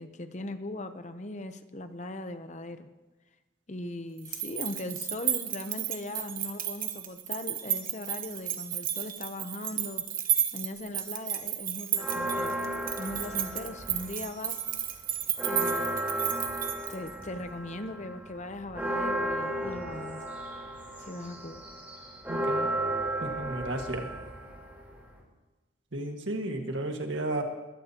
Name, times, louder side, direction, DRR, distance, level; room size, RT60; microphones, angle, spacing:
voice 1, 0.0-2.9 3.7-10.0 10.5-12.6 13.0-14.6 15.4-16.0 16.9-20.2 21.0-21.6, left 2 dB, 35° left, 9 dB, 0.7 m, -39 dB
sound 1, 4.2-17.2, right 10 dB, 45° right, 1.2 m, -33 dB
sound 2, 12.0-14.3 14.7-25.2, right 1 dB, 10° right, 3.7 m, -34 dB
voice 2, 22.3-22.7 23.2-24.1 25.9-27.4, right 1 dB, 65° right, 3 dB, 1.7 m, -33 dB
21.5 x 15.0 x 2.9 m, 1.1 s
head